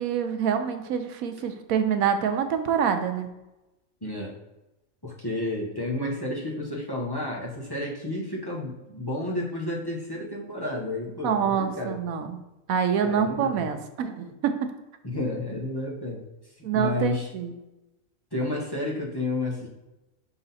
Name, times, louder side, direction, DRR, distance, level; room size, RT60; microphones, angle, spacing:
voice 1, 0.0-3.3 11.2-12.4 12.7-14.5 16.6-17.5, right 7 dB, 85° right, 8 dB, 1.1 m, -26 dB
voice 2, 4.0-4.3 5.0-12.0 13.0-13.7 15.0-17.3 18.3-19.7, left 2 dB, 20° left, -3 dB, 0.9 m, -31 dB
5.8 x 3.9 x 4.1 m, 0.98 s
omnidirectional pair, 1.4 m